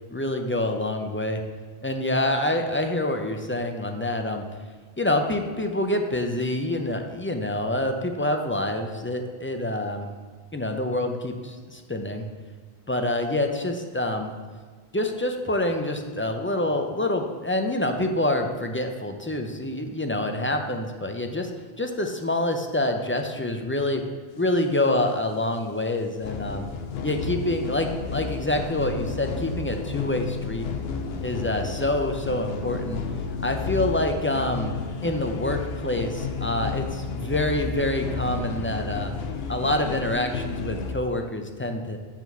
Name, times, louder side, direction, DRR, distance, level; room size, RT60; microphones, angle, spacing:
voice 1, 0.1-1.4 1.8-4.4 5.0-10.1 10.5-12.3 12.9-14.3 14.9-21.5 21.8-24.0 24.4-26.7 27.0-30.7 31.2-33.0 33.4-34.7 35.0-39.1 39.5-42.0, left 1 dB, 20° left, 4 dB, 0.3 m, -26 dB
sound 1, 26.2-40.9, left 4 dB, 80° left, 0.9 m, -32 dB
7.3 x 4.1 x 6.7 m, 1.5 s
omnidirectional pair, 1.0 m